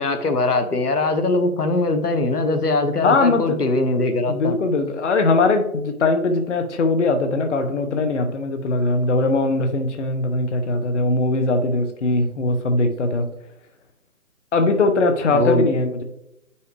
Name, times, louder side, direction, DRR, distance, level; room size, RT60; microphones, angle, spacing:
voice 1, 0.0-4.6 15.3-15.7, left 2 dB, 90° left, 9 dB, 1.2 m, -21 dB
voice 2, 3.0-3.6 4.3-13.3 14.5-16.0, left 2 dB, 50° left, 7 dB, 0.9 m, -20 dB
9.1 x 5.6 x 3.3 m, 0.83 s
figure-of-eight pair, 150°, 45 cm